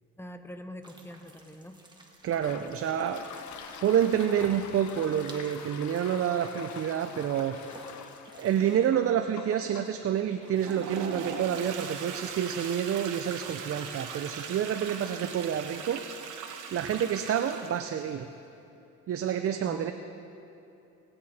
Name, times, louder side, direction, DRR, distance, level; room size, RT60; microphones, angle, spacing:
voice 1, 0.2-1.8 4.4-4.7 19.6-19.9, left 1 dB, 10° left, 8 dB, 0.8 m, -44 dB
sound 1, 0.8-8.9, right 2 dB, 15° right, 1.7 m, -54 dB
Toilet flush, 2.2-15.6, left 8 dB, 75° left, 0.8 m, -48 dB
voice 2, 2.2-3.2 3.8-7.6 8.4-16.0 16.7-18.3 19.1-19.9, right 9 dB, 50° right, 8 dB, 0.6 m, -28 dB
Toilet flush 2, 10.4-18.0, right 6 dB, 80° right, 1.1 m, -40 dB
18.5 x 8.6 x 4.3 m, 2.8 s
cardioid pair, 90°, 30 cm